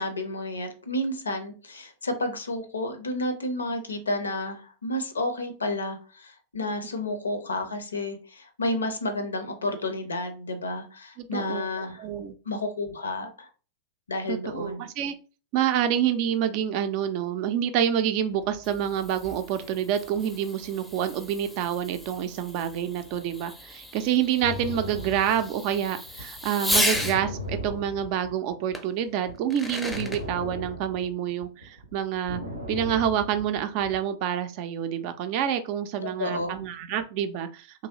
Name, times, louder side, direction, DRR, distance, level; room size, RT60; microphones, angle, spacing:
voice 1, 0.0-12.0 12.5-13.5 14.1-14.9 36.0-36.6, left 1 dB, 75° left, 7 dB, 0.6 m, -31 dB
voice 2, 11.2-11.7 12.0-12.3 14.3-15.2 15.5-32.4 32.7-37.7, right 9 dB, 45° right, 9 dB, 0.4 m, -27 dB
Fireworks, 18.3-27.2 28.7-28.8 29.4-30.2, left 1 dB, 5° left, 0.5 m, -34 dB
sound 1, 24.4-28.8 29.1-34.0, left 1 dB, 85° right, 0.6 m, -37 dB
2.9 x 2.6 x 2.8 m, 0.36 s
figure-of-eight pair, 90°, 0 cm